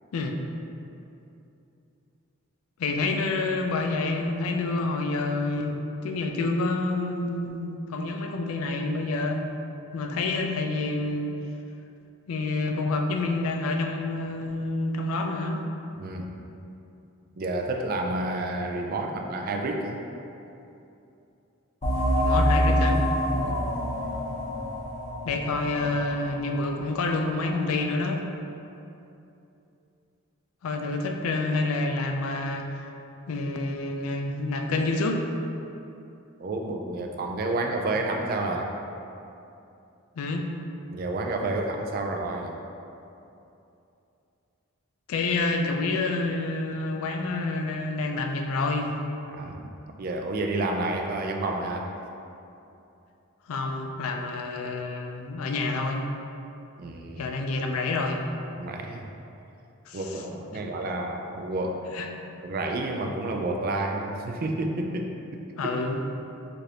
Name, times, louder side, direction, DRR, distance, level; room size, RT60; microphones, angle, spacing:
voice 1, 2.8-5.8 6.0-9.4 9.9-11.4 12.3-15.6 22.2-23.0 25.2-28.2 30.6-32.8 33.3-35.2 40.2-40.5 45.1-49.0 53.5-56.1 57.2-58.2 59.9-60.2 61.9-62.1 65.6-66.0, left 3 dB, 80° left, 4 dB, 0.4 m, -28 dB
voice 2, 15.9-16.3 17.4-20.0 23.3-23.6 36.4-38.7 40.9-42.5 49.3-49.6 50.0-51.8 56.8-57.2 58.6-59.1 59.9-61.8 62.4-65.1 65.6-65.7, right 2 dB, 45° right, 2 dB, 0.3 m, -30 dB
sound 1, 21.8-27.1, equal, 35° left, 0.9 m, -26 dB
4.7 x 2.5 x 2.8 m, 2.8 s
head